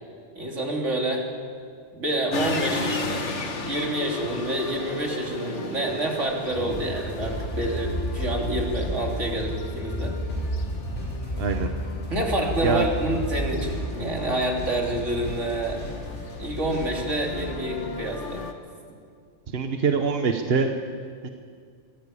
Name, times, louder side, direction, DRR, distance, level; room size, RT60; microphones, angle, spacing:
voice 1, 0.4-1.3 1.9-10.1 12.1-15.8 16.4-18.4, right 1 dB, 75° right, 0 dB, 3.6 m, -28 dB
sound 1, 2.3-18.5, left 3 dB, 70° left, 1.8 m, -35 dB
sound 2, 6.5-17.4, equal, 55° left, 5.6 m, -36 dB
sound 3, 7.0-13.8, equal, 20° left, 1.6 m, -32 dB
voice 2, 11.4-11.7 12.6-12.9 19.5-20.7 21.2-21.3, right 5 dB, 55° right, 5 dB, 1.3 m, -24 dB
25.0 x 15.5 x 8.5 m, 2.1 s
omnidirectional pair, 1.2 m